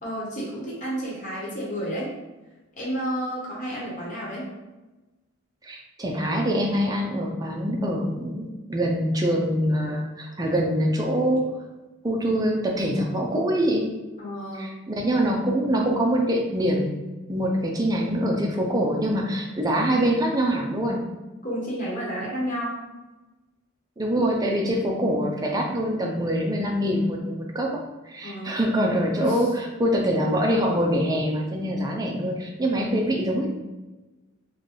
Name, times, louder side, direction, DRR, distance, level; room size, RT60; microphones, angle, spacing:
voice 1, 0.0-2.1 2.8-4.5 14.2-14.8 21.4-22.8 28.2-28.7 29.2-29.4, equal, 40° left, -5 dB, 1.1 m, -31 dB
voice 2, 5.6-11.5 12.0-13.9 14.6-17.0 17.3-21.0 24.0-29.5 29.8-33.5, equal, 20° right, 0 dB, 0.4 m, -24 dB
3.2 x 2.2 x 3.9 m, 1.1 s
head